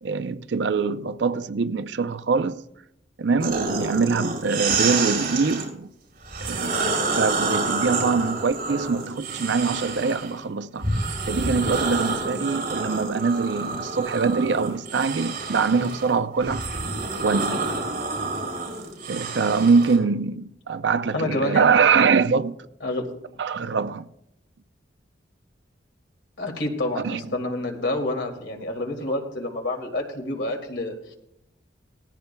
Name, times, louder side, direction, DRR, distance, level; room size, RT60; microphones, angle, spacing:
voice 1, 0.0-2.6 3.2-5.9 6.4-6.8 7.1-10.9 11.3-16.6 17.2-17.6 19.1-22.6 23.4-24.0 26.9-27.2, right 5 dB, 75° right, 0.6 m, -23 dB
sound 1, 3.4-5.7 6.2-10.3 10.8-20.0, right 3 dB, 55° right, 5.1 m, -28 dB
voice 2, 21.1-21.7 22.8-23.0 26.4-31.2, left 1 dB, 75° left, 2.3 m, -28 dB
18.0 x 15.0 x 2.3 m
head